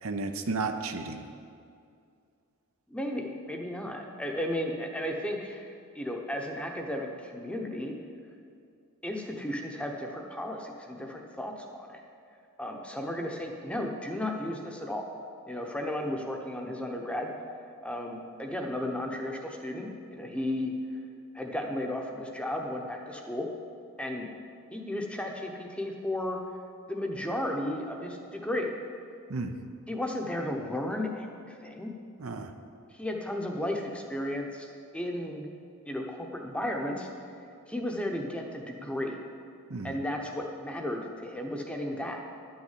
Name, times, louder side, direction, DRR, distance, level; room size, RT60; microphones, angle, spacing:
voice 1, 0.0-1.2 29.3-29.5 32.2-32.5 39.7-40.0, right 3 dB, 65° right, 6 dB, 0.7 m, -33 dB
voice 2, 2.9-7.9 9.0-12.0 12.6-15.0 15.5-17.3 17.8-20.7 21.3-23.5 24.0-24.3 24.7-26.4 26.9-28.7 29.9-31.9 32.9-34.7 34.9-35.5 35.9-37.1 37.7-39.2 39.8-42.2, left 1 dB, 5° left, 1 dB, 0.9 m, -34 dB
11.5 x 6.4 x 7.4 m, 2.4 s
head